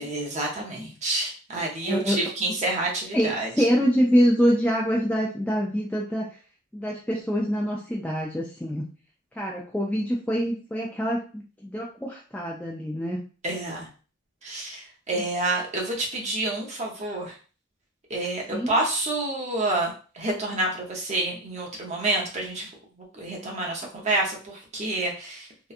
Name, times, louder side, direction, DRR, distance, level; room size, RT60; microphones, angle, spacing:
voice 1, 0.0-3.5 13.4-13.9 14.4-17.3 18.1-22.7 23.1-25.7, right 2 dB, 35° right, -1 dB, 0.7 m, -28 dB
voice 2, 1.8-2.2 3.1-6.3 6.7-8.9 9.3-13.2 18.5-18.7, equal, 5° left, -3 dB, 0.3 m, -25 dB
2.8 x 2.2 x 2.4 m, 0.38 s
head